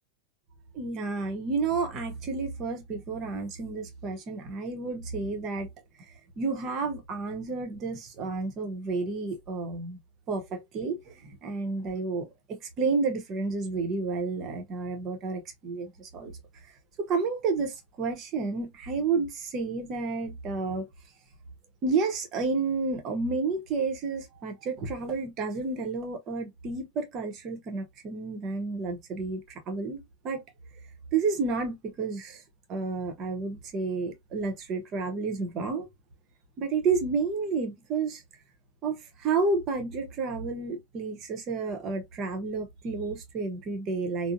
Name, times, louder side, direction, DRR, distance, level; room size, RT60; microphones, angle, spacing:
voice 1, 0.7-5.7 6.0-6.1 6.4-10.0 10.3-16.3 17.0-20.8 21.8-30.4 31.1-32.4 32.7-35.9 36.6-38.2 38.8-44.3, right 4 dB, 35° right, 1.0 m, -31 dB
3.7 x 2.1 x 2.5 m
figure-of-eight pair, 90°, 0 cm